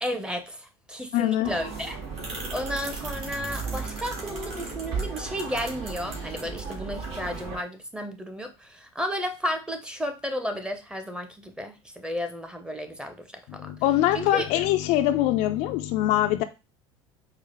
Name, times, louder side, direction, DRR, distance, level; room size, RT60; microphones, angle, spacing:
voice 1, 0.0-2.0 2.5-13.3 13.5-13.7 14.1-14.5, equal, 5° right, 7 dB, 0.8 m, -33 dB
voice 2, 1.1-1.5 13.5-16.4, left 13 dB, 60° left, 9 dB, 0.4 m, -23 dB
sound 1, 1.4-7.5, right 4 dB, 50° right, 1.7 m, -35 dB
4.8 x 2.1 x 3.0 m, 0.27 s
hypercardioid pair, 80°, 13 cm